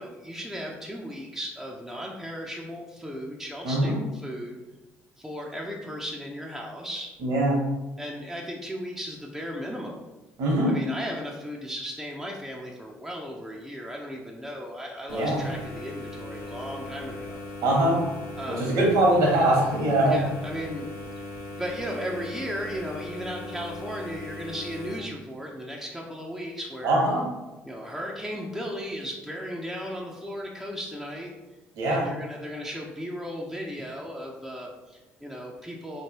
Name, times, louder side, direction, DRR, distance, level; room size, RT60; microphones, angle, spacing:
voice 1, 0.0-4.6 5.2-7.1 8.0-10.0 10.7-17.4 18.4-18.7 20.0-20.9 21.6-27.0 27.6-31.3 31.9-36.0, equal, 5° right, -2 dB, 0.7 m, -36 dB
voice 2, 3.6-4.0 7.2-7.6 10.4-10.8 15.1-15.4 17.6-18.0 18.5-20.2 26.8-27.2 31.7-32.1, right 1 dB, 70° right, -2 dB, 1.3 m, -22 dB
sound 1, 15.1-25.0, left 2 dB, 85° left, 0.7 m, -39 dB
4.2 x 3.2 x 3.0 m, 1.1 s
hypercardioid pair, 60°, 7 cm